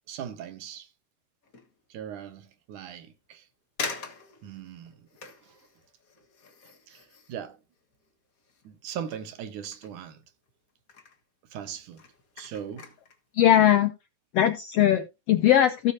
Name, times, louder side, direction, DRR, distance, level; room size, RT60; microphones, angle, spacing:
voice 1, 0.1-0.9 1.9-3.5 4.4-5.1 5.4-5.6 6.9-7.6 8.6-10.2 11.5-12.0 12.4-12.9, right 9 dB, 75° right, 2.7 m, -39 dB
sound 1, 1.4-1.8 2.3-2.4 3.2-3.3 3.8-8.8 9.0-10.5 10.8-11.2 11.7-13.2 13.6-13.8, left 5 dB, 45° left, 1.2 m, -43 dB
voice 2, 13.3-13.9 14.3-15.9, left 11 dB, 80° left, 1.4 m, -20 dB
17.5 x 6.7 x 2.7 m
omnidirectional pair, 3.7 m